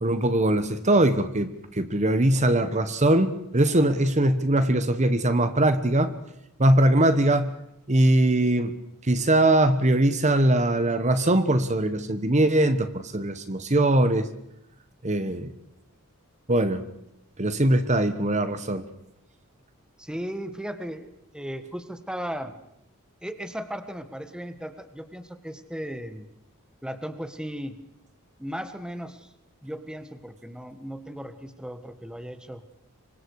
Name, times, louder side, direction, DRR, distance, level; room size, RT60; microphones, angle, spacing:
voice 1, 0.0-6.1 6.6-7.5 7.9-8.8 9.0-14.3 15.0-15.5 16.5-16.8 17.4-18.8, right 1 dB, 35° right, 10 dB, 1.3 m, -21 dB
voice 2, 20.0-22.5 23.2-26.3 26.8-27.8 28.4-29.3 29.6-32.6, equal, 5° right, 9 dB, 1.5 m, -36 dB
27.5 x 24.5 x 4.9 m, 0.84 s
head